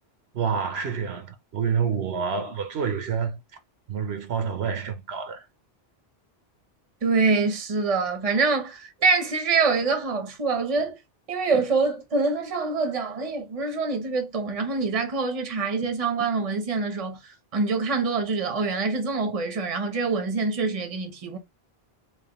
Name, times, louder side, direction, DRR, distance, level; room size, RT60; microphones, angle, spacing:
voice 1, 0.3-3.4 3.9-5.4, right 6 dB, 80° right, 1.1 m, -28 dB
voice 2, 7.0-11.0 11.3-17.2 17.5-21.4, right 4 dB, 35° right, 0.9 m, -25 dB
3.4 x 3.0 x 2.9 m
omnidirectional pair, 1.1 m